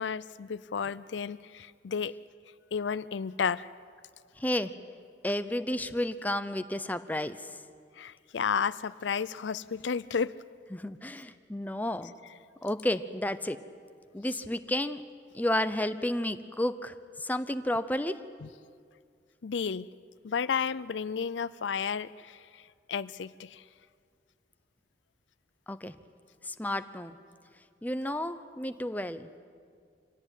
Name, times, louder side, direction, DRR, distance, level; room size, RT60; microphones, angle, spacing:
voice 1, 0.0-2.1 2.7-3.7 8.0-10.3 18.4-18.5 19.4-19.9 20.2-23.6, left 6 dB, 80° left, 17 dB, 0.5 m, -32 dB
voice 2, 4.4-4.7 5.2-7.5 10.7-12.1 12.6-13.6 14.1-15.0 15.3-16.9 17.2-18.2 25.7-25.9 26.4-27.2 27.8-29.3, left 1 dB, 10° left, 11 dB, 0.7 m, -31 dB
25.5 x 17.0 x 9.2 m, 2.2 s
head